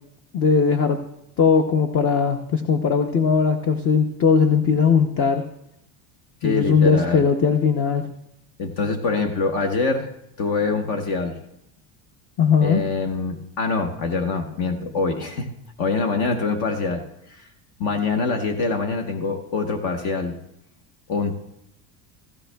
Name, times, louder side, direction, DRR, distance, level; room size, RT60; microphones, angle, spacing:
voice 1, 0.3-1.0 1.4-5.4 6.4-8.1 12.4-12.8, left 6 dB, 30° left, 7 dB, 0.6 m, -19 dB
voice 2, 6.4-7.2 8.6-10.1 10.4-11.4 12.6-15.5 15.8-17.5 17.8-20.4 21.1-21.4, left 4 dB, 55° left, 5 dB, 1.1 m, -24 dB
15.5 x 15.5 x 2.2 m, 0.80 s
cardioid pair, 160°, 43 cm